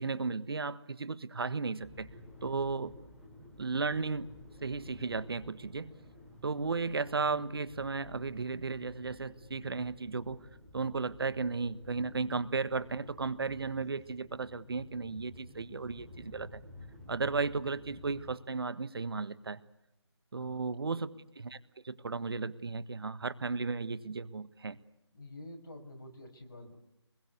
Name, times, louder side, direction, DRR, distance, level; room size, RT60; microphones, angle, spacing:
voice 1, 0.0-2.1 2.4-2.9 3.6-4.3 4.6-5.9 6.4-10.4 10.7-16.6 17.1-19.6 20.3-21.1 21.4-21.6 21.8-24.8, right 4 dB, 55° right, 14 dB, 1.4 m, -34 dB
sound 1, 1.8-18.3, left 2 dB, 5° left, 3.0 m, -53 dB
voice 2, 20.3-21.1 25.1-26.8, left 1 dB, 45° left, 2 dB, 6.2 m, -49 dB
26.0 x 21.5 x 8.3 m, 0.87 s
figure-of-eight pair, 160°, 15 cm